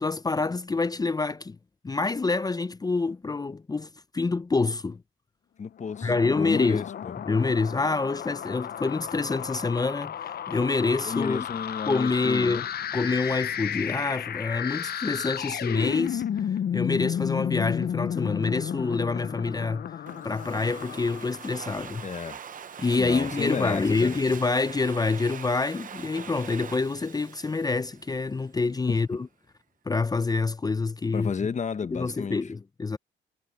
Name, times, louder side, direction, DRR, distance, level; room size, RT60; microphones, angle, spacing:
voice 1, 0.0-1.6 1.8-3.9 4.1-5.0 6.0-6.9 7.3-11.5 11.9-12.6 12.9-19.9 20.2-22.1 22.8-29.3 29.9-31.3 31.9-33.0, left 3 dB, 20° left, 0.6 m, -27 dB
voice 2, 5.6-6.1 6.3-7.1 11.0-12.6 22.0-22.4 23.0-24.2 28.9-29.0 31.1-32.4, left 6 dB, 35° left, 1.2 m, -32 dB
sound 1, 5.8-22.1, left 9 dB, 50° left, 0.7 m, -33 dB
Domestic sounds home sounds, 20.1-28.5, right 7 dB, 45° right, 0.8 m, -43 dB
cardioid pair, 90°, 20 cm